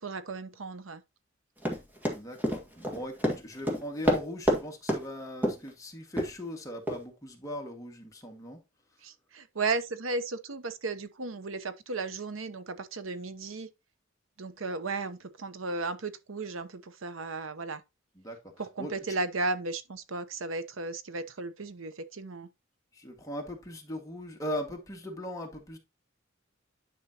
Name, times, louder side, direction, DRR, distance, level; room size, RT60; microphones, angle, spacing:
voice 1, 0.0-1.0 9.0-13.7 14.4-17.8 18.6-22.5, right 3 dB, 80° right, 0.9 m, -35 dB
Run, 1.6-4.6 4.9-5.0 5.4-5.7 6.2-6.3 6.9-7.0, equal, 10° right, 1.8 m, -27 dB
voice 2, 2.1-8.6 18.2-18.4 18.8-19.2 22.9-25.8, left 1 dB, 15° left, 1.9 m, -39 dB
10.5 x 5.3 x 2.9 m
head